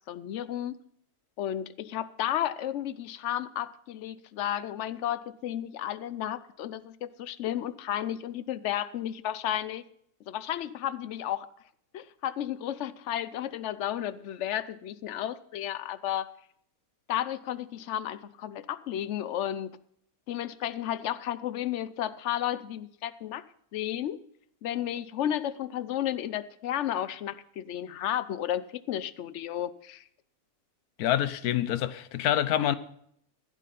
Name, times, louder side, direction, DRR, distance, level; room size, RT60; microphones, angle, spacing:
voice 1, 0.1-0.8 1.4-9.8 10.3-11.5 11.9-16.3 17.1-19.8 20.3-23.4 23.7-24.2 24.6-30.0, left 11 dB, 60° left, 0.8 m, -33 dB
voice 2, 31.0-32.8, left 11 dB, 80° left, 1.2 m, -26 dB
15.0 x 8.4 x 5.7 m
omnidirectional pair, 1.6 m